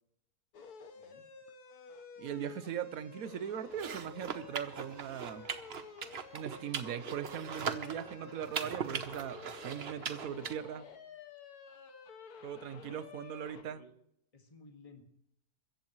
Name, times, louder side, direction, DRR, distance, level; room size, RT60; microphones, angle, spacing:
sound 1, 0.5-13.6, left 5 dB, 70° left, 1.7 m, -51 dB
voice 1, 2.2-5.5 6.3-10.8 12.4-13.8, right 9 dB, 65° right, 1.1 m, -40 dB
sound 2, 3.7-10.5, right 6 dB, 45° right, 1.0 m, -40 dB
voice 2, 13.6-13.9 14.3-15.0, left 3 dB, 20° left, 1.9 m, -56 dB
23.5 x 14.5 x 3.1 m
omnidirectional pair, 1.7 m